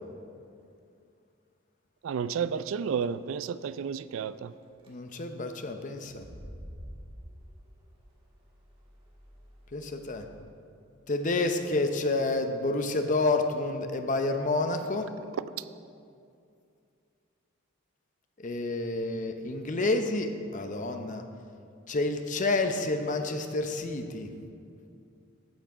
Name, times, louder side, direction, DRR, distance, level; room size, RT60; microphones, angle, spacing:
voice 1, 2.0-4.5, right 7 dB, 65° right, 15 dB, 0.3 m, -31 dB
sound 1, 4.5-4.9 6.0-10.4, equal, 25° right, 1.8 m, -48 dB
voice 2, 4.9-6.3 9.7-10.3 11.1-15.1 18.4-21.2 21.9-24.3, left 2 dB, 40° left, 6 dB, 0.7 m, -29 dB
14.0 x 6.0 x 4.9 m, 2.4 s
head